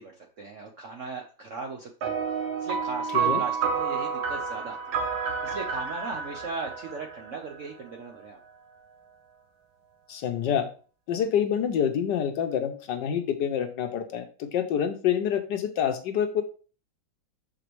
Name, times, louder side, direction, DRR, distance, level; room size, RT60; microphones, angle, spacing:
voice 1, 0.0-5.0 5.4-8.4, right 4 dB, 65° right, 3 dB, 0.8 m, -38 dB
sound 1, 2.0-7.8, right 6 dB, 80° right, 1.7 m, -30 dB
voice 2, 10.1-10.7 11.1-16.4, left 9 dB, 70° left, 7 dB, 1.2 m, -27 dB
6.5 x 5.0 x 3.0 m, 0.38 s
omnidirectional pair, 2.2 m